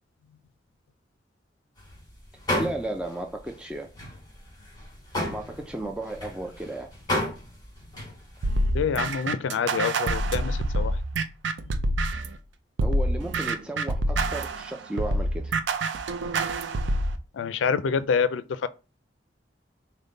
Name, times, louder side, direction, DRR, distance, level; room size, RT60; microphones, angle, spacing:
sound 1, 1.8-2.0 2.3-3.2 3.5-3.6 3.9-8.6, left 1 dB, 20° left, 1.3 m, -32 dB
voice 1, 2.6-3.9 5.3-6.9 12.8-15.6, right 1 dB, 5° right, 0.3 m, -34 dB
sound 2, 8.4-12.4 12.8-17.2, right 2 dB, 75° right, 0.5 m, -26 dB
voice 2, 8.7-11.0 11.7-11.8 17.3-18.7, left 6 dB, 90° left, 0.3 m, -27 dB
5.1 x 2.1 x 3.9 m
head